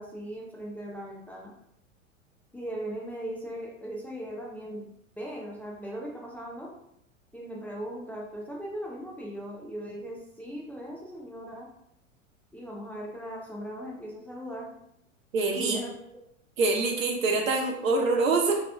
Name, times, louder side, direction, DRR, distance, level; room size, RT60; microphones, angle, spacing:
voice 1, 0.0-1.5 2.5-4.9 5.2-6.7 7.3-11.7 12.5-14.7 15.5-15.9, equal, 5° left, -3 dB, 0.4 m, -38 dB
voice 2, 15.3-15.8 16.6-18.6, right 3 dB, 75° right, 1 dB, 1.0 m, -25 dB
3.8 x 3.0 x 3.3 m, 0.76 s
figure-of-eight pair, 90°, 40 cm